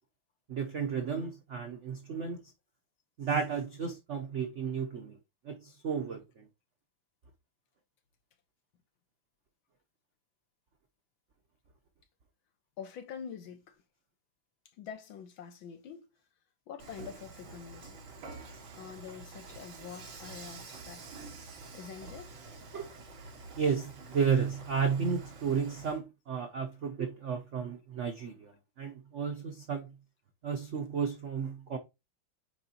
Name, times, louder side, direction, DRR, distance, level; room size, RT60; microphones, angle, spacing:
voice 1, 0.5-2.4 3.2-5.2 5.4-6.5 22.7-22.9 23.6-29.9 30.4-31.8, right 6 dB, 80° right, 0.6 m, -33 dB
voice 2, 12.8-13.8 14.8-16.1 16.7-18.0 18.7-21.1 21.7-22.3, left 7 dB, 70° left, 1.8 m, -45 dB
Dishes pots and pans / Frying (food), 16.8-26.0, right 3 dB, 65° right, 2.3 m, -48 dB
9.1 x 3.7 x 2.8 m
omnidirectional pair, 2.3 m